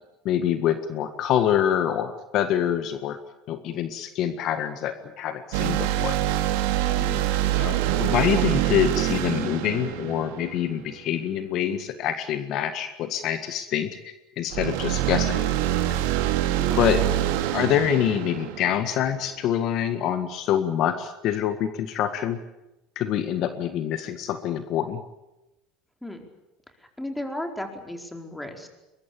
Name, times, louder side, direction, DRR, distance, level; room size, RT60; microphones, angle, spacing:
voice 1, 0.3-3.2 3.5-6.2 7.6-13.9 14.4-15.4 16.8-17.0 17.5-22.4 23.0-25.0, left 10 dB, 55° left, 9 dB, 1.8 m, -25 dB
sound 1, 5.5-11.0 14.5-19.3, right 13 dB, 75° right, 2.6 m, -25 dB
voice 2, 6.9-7.3 16.6-16.8 26.0-26.3 27.0-28.7, left 1 dB, 5° left, 4 dB, 4.8 m, -35 dB
22.5 x 22.0 x 8.7 m, 0.96 s
hypercardioid pair, 85°, 0 cm